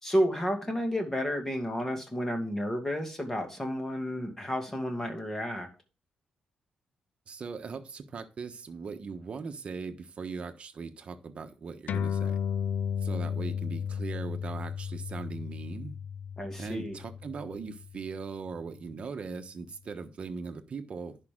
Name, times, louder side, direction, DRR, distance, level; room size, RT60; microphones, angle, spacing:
voice 1, 0.0-5.7 16.4-17.0, equal, 15° left, 3 dB, 2.3 m, -31 dB
voice 2, 7.3-12.4 13.0-16.0 16.6-21.2, right 5 dB, 45° right, 7 dB, 1.1 m, -39 dB
sound 1, 11.9-18.7, left 7 dB, 65° left, 0.5 m, -34 dB
10.5 x 5.6 x 3.8 m, 0.33 s
cardioid pair, 120°, 3 cm